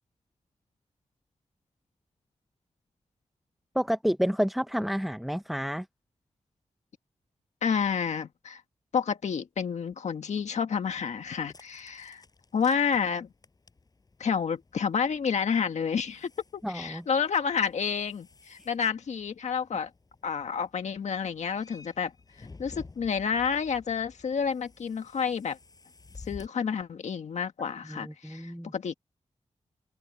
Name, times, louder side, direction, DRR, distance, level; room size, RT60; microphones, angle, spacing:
voice 1, 3.7-5.9 16.6-17.0 18.6-18.7 27.8-28.7, equal, ahead, 0.7 m, -30 dB
voice 2, 7.6-8.6 8.9-12.2 12.5-13.3 14.2-19.9 20.2-22.1 22.4-25.6 26.3-28.9, left 6 dB, 75° left, 1.6 m, -29 dB
sound 1, 10.9-26.5, left 3 dB, 35° left, 5.3 m, -53 dB
open air
wide cardioid pair, 145°, 12 cm